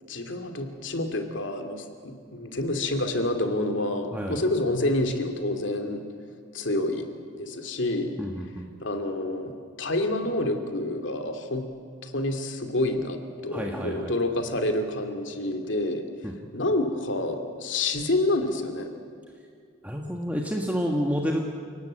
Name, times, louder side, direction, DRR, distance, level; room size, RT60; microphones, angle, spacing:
voice 1, 0.1-6.0 6.5-7.1 7.4-8.2 8.8-11.7 12.0-16.0 16.5-18.9, left 2 dB, 65° left, 6 dB, 2.6 m, -28 dB
voice 2, 4.1-4.4 8.2-8.7 13.5-14.1 16.2-16.3 19.8-21.4, equal, 10° right, 1 dB, 1.5 m, -29 dB
29.5 x 18.5 x 8.9 m, 2.3 s
head